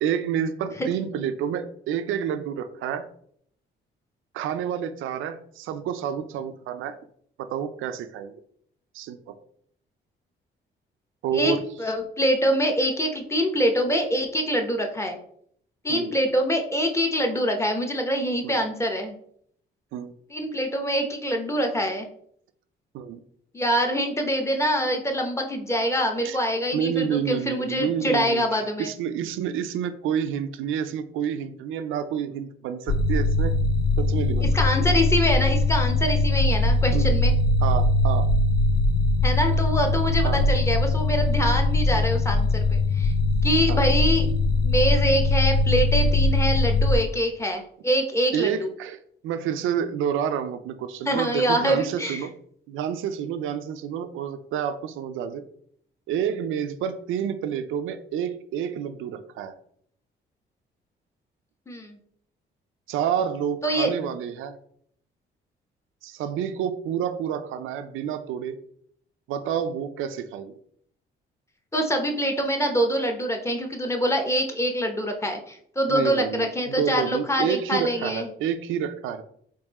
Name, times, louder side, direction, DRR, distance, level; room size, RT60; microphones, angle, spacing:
voice 1, 0.0-3.1 4.3-6.9 7.4-8.3 8.9-9.3 11.2-11.6 15.9-16.1 18.4-18.6 19.9-20.1 22.9-23.2 26.2-26.4 26.7-33.5 34.0-34.5 34.8-34.9 36.9-37.2 37.6-38.3 40.2-40.4 43.7-43.8 48.3-52.3 52.7-55.4 56.1-59.5 62.9-64.6 66.0-68.6 69.3-70.5 75.9-79.2, right 8 dB, 85° right, 10 dB, 0.4 m, -29 dB
voice 2, 11.8-15.2 15.8-19.2 20.3-22.1 23.5-28.9 34.5-37.3 39.2-43.1 43.4-44.3 44.6-48.7 51.0-52.3 61.7-62.0 63.6-64.0 71.7-78.3, equal, 15° left, 3 dB, 0.8 m, -25 dB
sound 1, 32.9-47.0, left 2 dB, 55° left, 0.5 m, -21 dB
3.6 x 2.6 x 4.1 m, 0.66 s
cardioid pair, 90°, 20 cm